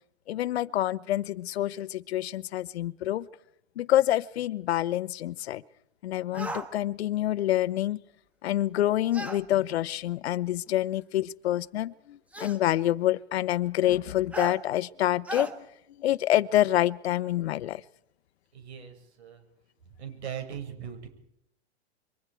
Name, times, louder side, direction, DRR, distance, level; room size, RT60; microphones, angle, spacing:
voice 1, 0.3-3.3 3.8-5.6 6.0-8.0 8.4-15.7 16.0-17.8, left 13 dB, 70° left, 17 dB, 0.9 m, -27 dB
sound 1, 6.3-6.7 9.1-9.4 10.7-10.8 12.3-12.6 14.3-14.6 15.2-15.5, right 1 dB, 5° right, 1.3 m, -35 dB
voice 2, 18.5-19.4 20.0-21.1, right 8 dB, 75° right, 5 dB, 5.7 m, -39 dB
25.0 x 23.0 x 4.6 m, 0.77 s
hypercardioid pair, 150°, 33 cm